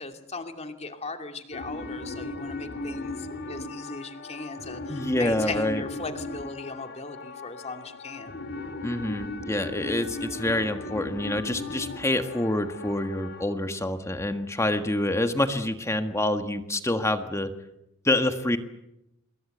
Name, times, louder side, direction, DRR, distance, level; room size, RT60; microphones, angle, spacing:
voice 1, 0.0-8.3, left 3 dB, 30° left, 6 dB, 2.6 m, -37 dB
sound 1, 1.5-13.4, left 2 dB, 55° left, 2.6 m, -37 dB
voice 2, 4.9-5.8 8.8-17.5 18.0-18.6, left 1 dB, 15° left, 7 dB, 1.5 m, -27 dB
27.5 x 22.0 x 8.0 m, 0.84 s
head